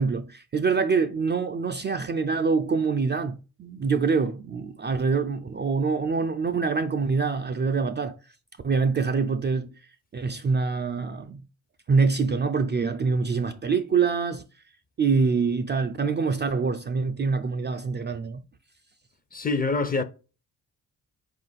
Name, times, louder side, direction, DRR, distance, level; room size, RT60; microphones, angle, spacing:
voice 1, 0.0-8.1 8.6-9.7 10.1-11.4 11.9-14.4 15.0-18.4, right 5 dB, 30° right, 0.3 m, -25 dB
voice 2, 19.3-20.0, left 3 dB, 25° left, 0.5 m, -25 dB
4.5 x 2.5 x 4.0 m
cardioid pair, 70°, 38 cm